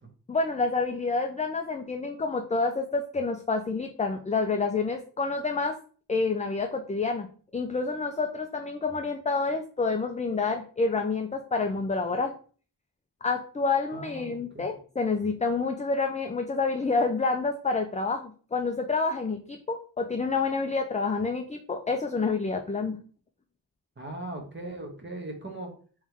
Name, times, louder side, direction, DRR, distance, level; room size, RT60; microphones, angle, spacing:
voice 1, 0.3-5.8 6.1-7.3 7.5-12.3 13.2-23.0, left 4 dB, 20° left, 4 dB, 0.3 m, -28 dB
voice 2, 13.9-14.7 24.0-25.7, right 2 dB, 30° right, 2 dB, 1.1 m, -39 dB
3.6 x 3.1 x 3.4 m, 0.42 s
wide cardioid pair, 85°, 39 cm